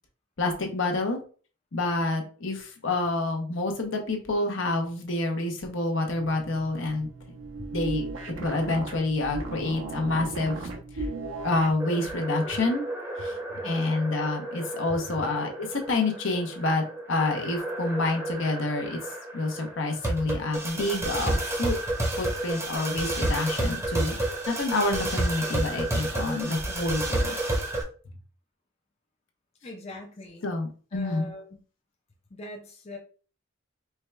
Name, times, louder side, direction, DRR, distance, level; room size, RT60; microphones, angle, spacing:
voice 1, 0.4-1.2 1.7-7.1 7.7-8.1 8.4-10.7 10.9-11.1 11.4-12.8 13.2-13.3 13.6-21.7 22.2-24.1 24.5-27.4 30.4-31.3, left 2 dB, 65° left, 3 dB, 0.8 m, -28 dB
sound 1, 6.1-11.8, right 2 dB, 80° right, 0.8 m, -36 dB
sound 2, 11.8-27.8, right 1 dB, 15° right, 0.8 m, -31 dB
voice 2, 13.5-14.0 29.6-30.5 30.9-31.5 32.3-33.0, left 2 dB, 30° left, 1 dB, 0.6 m, -42 dB
4.5 x 2.3 x 3.2 m, 0.40 s
head